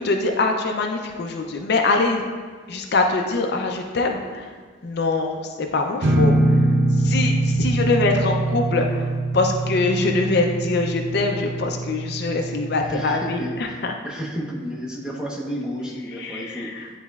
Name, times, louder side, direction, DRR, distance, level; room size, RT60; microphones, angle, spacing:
voice 1, 0.0-2.2 2.7-4.5 4.8-6.4 7.0-9.1 9.3-13.4 13.8-13.9 16.2-16.9, left 3 dB, 55° left, 3 dB, 0.5 m, -23 dB
sound 1, 6.0-13.6, right 2 dB, 65° right, 0.5 m, -23 dB
voice 2, 12.8-13.8 14.0-16.9, equal, 5° right, -5 dB, 1.0 m, -31 dB
10.0 x 4.1 x 2.3 m, 1.5 s
head